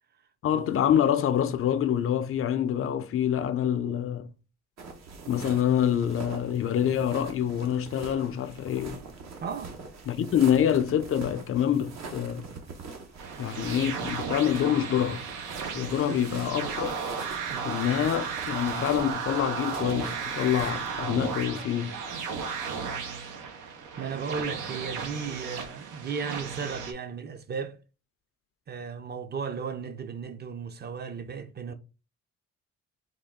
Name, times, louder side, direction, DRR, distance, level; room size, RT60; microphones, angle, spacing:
voice 1, 0.4-4.3 5.3-9.0 10.1-12.5 13.4-15.2 15.7-17.0 17.6-22.0, left 10 dB, 50° left, 0.4 m, -26 dB
sound 1, 4.8-21.4, right 4 dB, 60° right, 0.9 m, -43 dB
voice 2, 9.4-9.7 10.2-10.4 16.1-16.5 17.5-17.7 24.0-27.8 28.7-31.7, right 6 dB, 35° right, 0.6 m, -35 dB
sound 2, 13.2-26.9, right 5 dB, 85° right, 0.8 m, -35 dB
3.6 x 2.3 x 3.5 m
cardioid pair, 90°, 30 cm